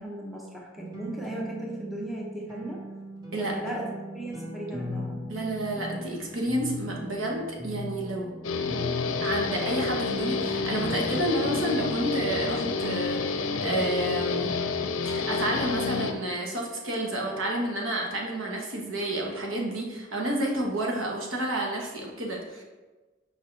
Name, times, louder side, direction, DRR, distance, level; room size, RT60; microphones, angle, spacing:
voice 1, 0.0-2.8 3.4-5.2, right 1 dB, ahead, -3 dB, 0.8 m, -36 dB
sound 1, 0.8-11.2, left 1 dB, 20° right, 1.3 m, -39 dB
voice 2, 5.3-8.3 9.2-14.5 15.0-22.6, right 1 dB, 90° right, -1 dB, 1.2 m, -30 dB
Guitar, 8.4-16.1, left 4 dB, 80° left, 0.5 m, -29 dB
6.3 x 4.9 x 3.3 m, 1.2 s
head